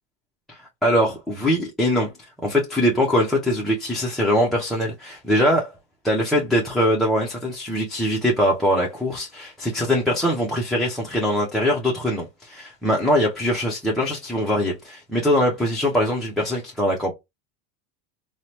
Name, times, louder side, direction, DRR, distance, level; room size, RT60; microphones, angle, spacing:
voice 1, 0.5-2.1 2.4-5.7 6.0-17.1, equal, ahead, 0.4 m, -22 dB
3.0 x 2.0 x 2.7 m
supercardioid pair, 115°, 42 cm